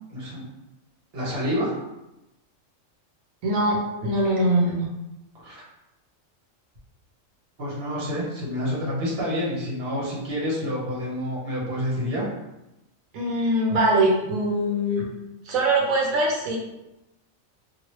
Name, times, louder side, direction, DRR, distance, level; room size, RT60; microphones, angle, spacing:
voice 1, 0.1-0.4 1.1-1.7 5.4-5.6 7.6-12.3, equal, 50° right, -5 dB, 1.2 m, -28 dB
voice 2, 3.4-4.9 13.1-15.0 15.4-16.6, right 1 dB, 90° right, -2 dB, 1.1 m, -22 dB
2.9 x 2.7 x 3.0 m, 0.94 s
omnidirectional pair, 1.4 m